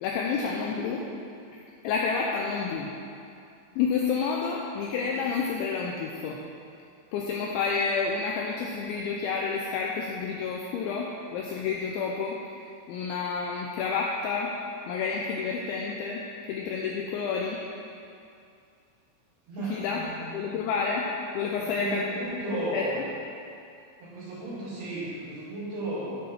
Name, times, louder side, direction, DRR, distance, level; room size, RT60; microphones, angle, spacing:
voice 1, 0.0-1.1 1.5-2.9 3.8-6.4 7.1-14.6 14.9-17.6 19.6-20.0 20.3-22.9, left 5 dB, 85° left, -1 dB, 2.7 m, -30 dB
voice 2, 19.5-20.3 21.6-23.0 24.0-26.1, right 2 dB, 60° right, -13 dB, 3.7 m, -35 dB
10.0 x 6.1 x 6.5 m, 2.5 s
omnidirectional pair, 6.0 m